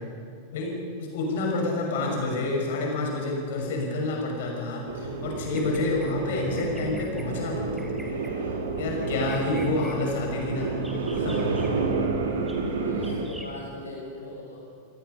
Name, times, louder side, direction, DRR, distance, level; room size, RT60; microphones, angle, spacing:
voice 1, 0.5-7.7 8.8-10.7 11.1-11.7, left 2 dB, 55° left, 0 dB, 6.2 m, -28 dB
voice 2, 1.3-1.8 12.8-14.6, left 1 dB, 80° left, -5 dB, 6.6 m, -40 dB
sound 1, 4.8-13.2, right 4 dB, 65° right, 2.9 m, -30 dB
Bird vocalization bird call bird song, 5.4-6.1 6.6-7.2 7.8-8.4 9.0-10.0 10.7-11.7 12.5-12.6 13.0-13.5, right 1 dB, 5° right, 3.3 m, -46 dB
28.5 x 18.5 x 5.6 m, 2.3 s
figure-of-eight pair, 90°, 0 cm